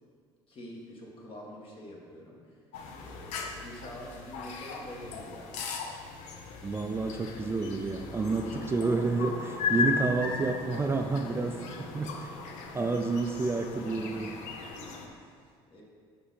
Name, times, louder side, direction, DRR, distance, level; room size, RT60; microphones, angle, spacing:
voice 1, 0.5-2.6 2.9-5.7 11.4-11.5 11.8-12.8 14.8-15.8, equal, 50° left, -3 dB, 1.7 m, -47 dB
sound 1, 2.7-15.1, left 5 dB, 75° left, 0.7 m, -37 dB
voice 2, 6.6-11.6 11.9-12.1 12.7-14.4, right 3 dB, 20° right, 4 dB, 0.4 m, -29 dB
5.6 x 5.5 x 4.2 m, 2.1 s
supercardioid pair, 85°, 12 cm